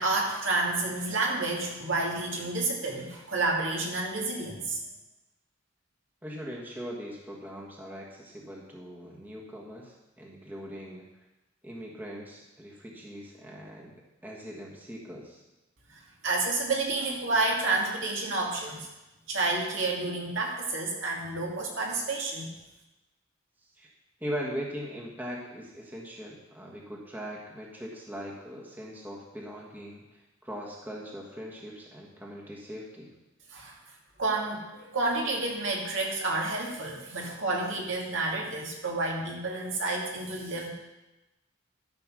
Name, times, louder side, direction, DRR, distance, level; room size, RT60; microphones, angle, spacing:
voice 1, 0.0-4.8 15.9-18.9 19.3-22.5 33.5-33.8 34.2-40.7, right 2 dB, 65° right, -1 dB, 2.4 m, -30 dB
voice 2, 6.2-11.1 11.6-14.0 14.2-15.4 23.8-23.9 24.2-33.1, equal, 10° right, -2 dB, 1.5 m, -40 dB
13.0 x 6.0 x 6.3 m, 0.99 s
head